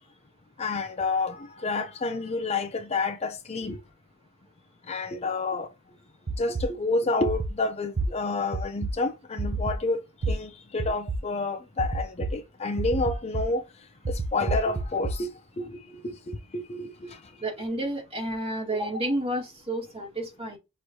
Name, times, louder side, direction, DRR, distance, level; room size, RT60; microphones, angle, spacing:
voice 1, 0.6-3.8 4.9-5.7 6.4-10.0 10.3-13.6 14.1-17.2, left 3 dB, 30° left, 0.5 m, -29 dB
sound 1, 6.3-6.6 7.3-7.5 8.0-8.1 8.5-8.9 9.4-9.8 10.2-10.3 10.8-11.2 11.8-12.3 12.8-13.4 14.0-15.1, right 3 dB, 60° right, 0.6 m, -28 dB
voice 2, 17.4-20.6, right 1 dB, 30° right, 2.6 m, -30 dB
6.2 x 3.1 x 2.7 m
head